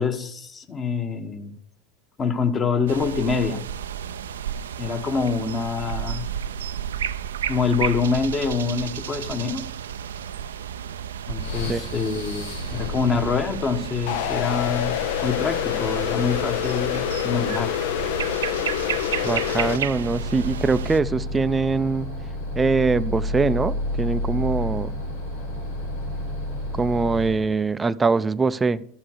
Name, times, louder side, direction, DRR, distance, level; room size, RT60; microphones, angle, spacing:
voice 1, 0.0-1.5 2.2-3.6 4.8-6.3 7.5-9.7 11.3-17.7, left 5 dB, 30° left, 1.3 m, -25 dB
sound 1, 2.9-21.0, right 9 dB, 70° right, 0.5 m, -32 dB
sound 2, 11.4-27.5, left 2 dB, 80° left, 3.9 m, -32 dB
sound 3, 14.1-19.8, left 12 dB, 60° left, 0.5 m, -27 dB
voice 2, 19.2-22.1 22.5-24.9 26.8-28.8, right 4 dB, 15° right, 0.5 m, -23 dB
13.0 x 7.3 x 6.7 m
figure-of-eight pair, 80°, 0 cm